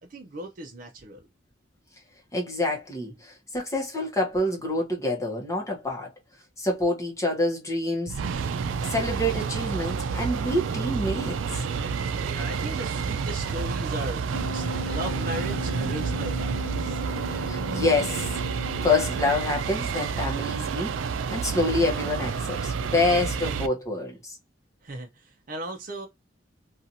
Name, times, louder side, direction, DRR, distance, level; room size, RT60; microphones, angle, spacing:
voice 1, 0.1-1.3 12.2-17.0 24.8-26.1, right 1 dB, 45° right, 0.5 m, -37 dB
voice 2, 2.3-6.1 6.6-8.2 8.8-11.6 17.3-18.4 18.8-24.4, left 2 dB, 15° left, 0.9 m, -27 dB
sound 1, 8.1-23.7, right 5 dB, 90° right, 0.4 m, -29 dB
Wind instrument woodwind instrument, 14.3-19.7, left 3 dB, 75° left, 0.6 m, -38 dB
2.7 x 2.4 x 2.6 m
head